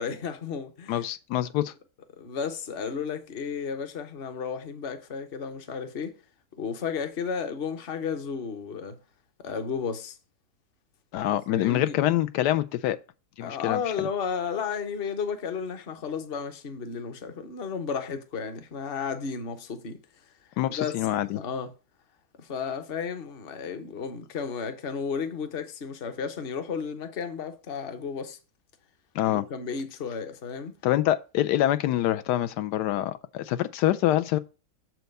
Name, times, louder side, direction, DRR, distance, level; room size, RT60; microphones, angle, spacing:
voice 1, 0.0-1.0 2.2-6.2 6.5-9.0 9.4-10.2 11.5-12.0 13.4-20.0 20.7-21.0 21.3-21.7 22.4-28.4 29.3-30.8, left 6 dB, 45° left, 0.9 m, -33 dB
voice 2, 0.9-1.7 11.1-13.0 13.4-14.1 20.6-21.4 29.1-29.4 30.8-34.4, left 13 dB, 90° left, 1.2 m, -25 dB
7.0 x 4.5 x 5.2 m
omnidirectional pair, 1.7 m